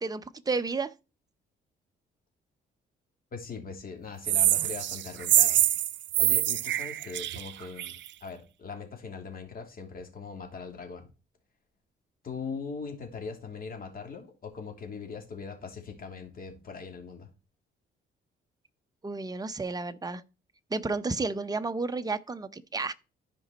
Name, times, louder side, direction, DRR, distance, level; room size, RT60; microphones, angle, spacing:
voice 1, 0.0-0.9 19.0-20.2 20.7-22.9, right 3 dB, 20° right, 0.8 m, -31 dB
voice 2, 3.3-5.6 6.2-11.1 12.2-17.3, left 5 dB, 45° left, 2.8 m, -40 dB
sound 1, 4.3-8.1, right 13 dB, 65° right, 0.5 m, -25 dB
13.5 x 5.1 x 4.3 m
cardioid pair, 90°, 20 cm